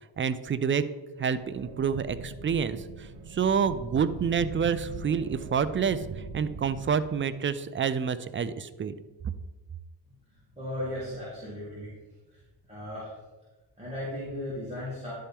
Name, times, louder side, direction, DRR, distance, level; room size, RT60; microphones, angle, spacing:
voice 1, 0.2-0.8 1.2-8.9, right 6 dB, 30° right, 14 dB, 0.3 m, -28 dB
sound 1, 1.3-7.5, right 4 dB, 50° right, 0.8 m, -42 dB
voice 2, 10.6-11.9 12.3-12.4 12.7-13.1 13.8-15.1, left 1 dB, 15° right, -9 dB, 2.5 m, -36 dB
11.0 x 4.4 x 3.5 m, 1.2 s
cardioid pair, 85°, 48 cm